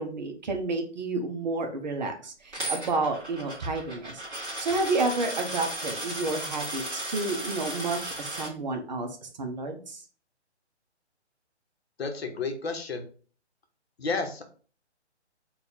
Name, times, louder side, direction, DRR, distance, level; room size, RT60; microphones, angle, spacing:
voice 1, 0.0-10.0, right 3 dB, 40° right, 4 dB, 0.7 m, -30 dB
Coin (dropping), 2.5-8.5, right 1 dB, 10° right, 1.3 m, -35 dB
voice 2, 12.0-13.1 14.0-14.4, left 4 dB, 60° left, 5 dB, 0.9 m, -31 dB
4.0 x 2.4 x 4.0 m, 0.40 s
hypercardioid pair, 160°, 35 cm